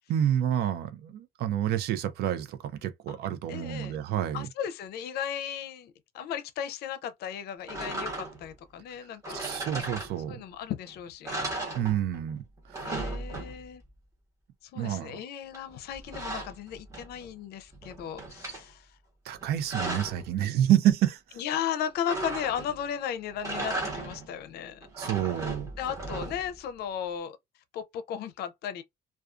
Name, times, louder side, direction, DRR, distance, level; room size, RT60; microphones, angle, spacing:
voice 1, 0.1-4.5 9.3-10.4 11.7-12.4 12.7-12.9 14.7-15.2 19.2-21.4 24.9-25.7, right 11 dB, 70° right, 0.5 m, -28 dB
voice 2, 3.5-4.0 4.3-9.4 10.3-11.3 12.8-13.8 14.6-19.0 21.4-24.8 25.8-27.4 27.7-28.8, left 9 dB, 70° left, 0.5 m, -35 dB
sound 1, 7.7-8.6 9.2-10.5 10.9-11.0 11.2-12.3 12.6-13.8 15.5-17.3 17.7-18.6 19.3-20.3 22.1-22.9 23.3-24.3 24.8-26.6, right 2 dB, 20° right, 1.0 m, -36 dB
2.4 x 2.3 x 2.3 m
cardioid pair, 110°, 17 cm